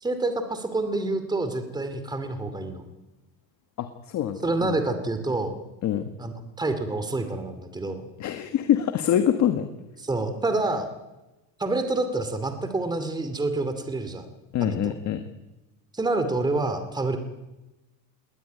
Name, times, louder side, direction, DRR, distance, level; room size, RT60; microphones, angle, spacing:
voice 1, 0.0-2.8 4.4-5.5 6.2-8.1 10.0-10.9 11.6-14.3 14.6-14.9 15.9-17.2, right 2 dB, 10° right, 8 dB, 2.5 m, -27 dB
voice 2, 3.8-4.8 5.8-6.1 8.2-9.7 14.5-15.2, left 10 dB, 45° left, 8 dB, 1.6 m, -25 dB
21.0 x 18.5 x 9.4 m, 1.0 s
cardioid pair, 145°, 39 cm